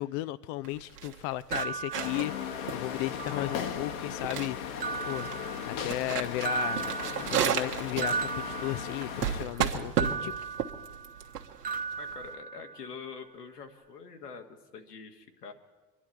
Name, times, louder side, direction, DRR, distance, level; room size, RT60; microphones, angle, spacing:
voice 1, 0.0-4.6 5.0-5.3 5.6-6.9 7.3-10.3, left 16 dB, 40° left, 15 dB, 0.5 m, -35 dB
sound 1, 0.6-12.3, right 8 dB, 70° right, 1.6 m, -34 dB
sound 2, 1.5-2.8 3.2-4.0 4.8-6.1 6.4-9.4 10.0-11.4 11.6-13.0, right 5 dB, 20° right, 0.7 m, -37 dB
sound 3, 1.9-9.4, left 8 dB, 55° left, 1.4 m, -37 dB
voice 2, 12.0-15.5, left 5 dB, 75° left, 4 dB, 1.8 m, -45 dB
25.5 x 11.0 x 4.4 m, 1.3 s
figure-of-eight pair, 75°, 47 cm